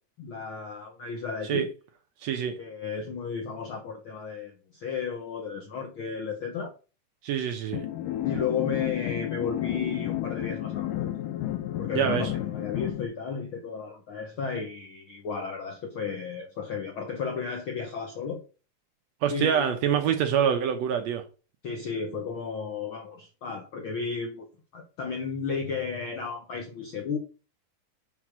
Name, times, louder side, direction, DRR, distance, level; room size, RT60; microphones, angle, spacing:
voice 1, 0.2-1.7 2.6-6.7 8.2-11.1 11.8-18.4 19.3-19.9 21.6-24.5 24.7-27.2, left 5 dB, 70° left, 1.2 m, -33 dB
voice 2, 2.2-2.6 7.2-7.8 11.9-12.3 19.2-21.3, right 8 dB, 70° right, 1.7 m, -25 dB
Real-Reggea Dist Chops, 7.7-13.1, left 13 dB, 85° left, 2.4 m, -31 dB
7.4 x 3.8 x 6.1 m
omnidirectional pair, 3.7 m